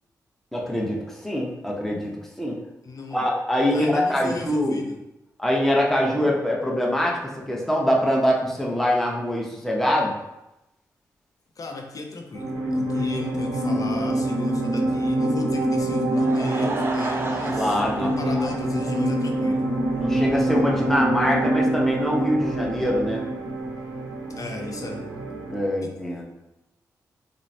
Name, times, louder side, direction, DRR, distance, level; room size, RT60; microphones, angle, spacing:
voice 1, 0.5-2.1 2.4-2.5 3.1-4.8 5.4-10.1 17.6-18.5 20.0-23.2 25.5-26.2, equal, 5° left, -3 dB, 0.7 m, -24 dB
voice 2, 2.8-3.3 3.7-5.0 11.6-19.7 24.4-25.1, left 3 dB, 50° left, 3 dB, 0.5 m, -35 dB
sound 1, 12.3-25.7, right 1 dB, 90° right, 0.6 m, -25 dB
Laughter / Crowd, 16.0-19.4 19.7-19.8 20.4-20.5 20.6-20.7, right 2 dB, 30° right, 0.4 m, -32 dB
3.0 x 2.0 x 2.6 m, 0.93 s
supercardioid pair, 45°, 7 cm